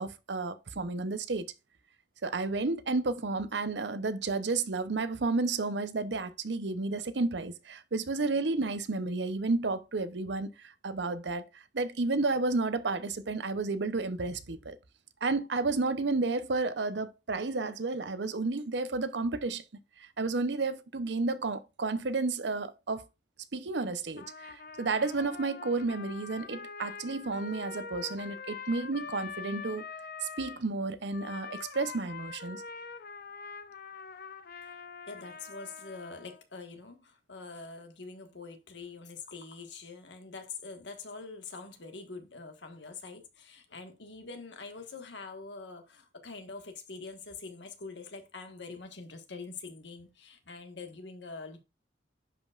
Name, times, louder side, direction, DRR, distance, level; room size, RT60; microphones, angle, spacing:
voice 1, 0.0-1.5 2.2-11.5 11.7-14.8 15.2-19.6 20.0-23.0 23.5-29.8 30.4-32.6, right 3 dB, 75° right, 0.7 m, -31 dB
Trumpet, 24.2-30.6 31.1-36.4, left 5 dB, 55° left, 0.7 m, -44 dB
voice 2, 34.6-51.6, left 4 dB, 85° left, 1.6 m, -45 dB
11.0 x 5.2 x 2.4 m
head